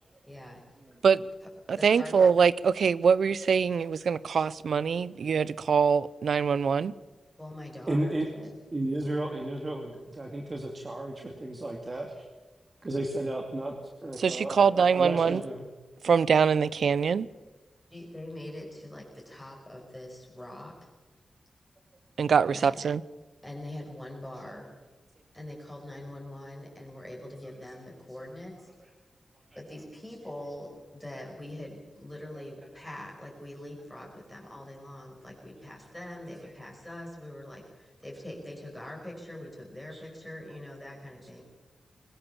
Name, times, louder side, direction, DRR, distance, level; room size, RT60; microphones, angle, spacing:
voice 1, 0.2-0.6 1.8-2.1 7.4-8.5 17.9-20.9 22.5-22.8 23.4-24.7 25.3-28.7 29.5-41.4, left 1 dB, 5° left, 5.7 m, -43 dB
voice 2, 1.7-6.9 14.2-15.4 16.0-17.3 22.2-23.0, right 6 dB, 80° right, 0.7 m, -23 dB
voice 3, 7.9-8.3 8.7-12.2 12.8-13.8 14.0-15.6 24.4-24.5 39.9-40.0, right 1 dB, 35° right, 2.4 m, -33 dB
23.0 x 19.5 x 7.1 m
wide cardioid pair, 105°, 0 cm